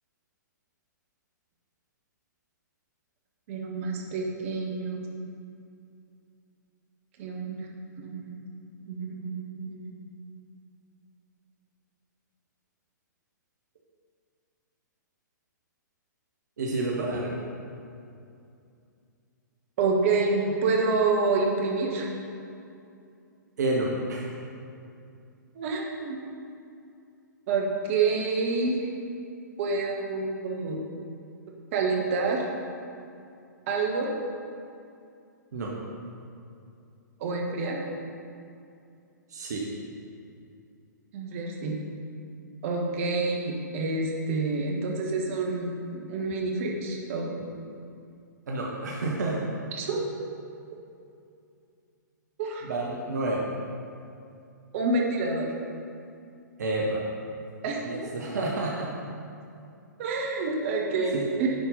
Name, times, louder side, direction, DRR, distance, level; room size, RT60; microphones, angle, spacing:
voice 1, 3.5-5.1 7.2-7.7 8.0-8.3 8.9-9.9 19.8-22.1 25.5-26.2 27.5-28.9 29.6-30.8 31.7-32.4 33.7-34.1 37.2-37.8 41.1-41.7 42.6-47.5 49.8-50.0 52.4-52.6 54.7-55.5 57.6-58.0 60.0-61.5, right 3 dB, 40° right, -1 dB, 1.5 m, -28 dB
voice 2, 16.6-17.4 23.6-24.3 35.5-35.7 39.3-39.7 48.5-49.5 52.6-53.4 56.6-57.0 57.8-58.9 61.1-61.3, right 2 dB, 60° right, -3 dB, 1.2 m, -29 dB
10.5 x 4.4 x 5.4 m, 2.5 s
figure-of-eight pair, 115°, 10 cm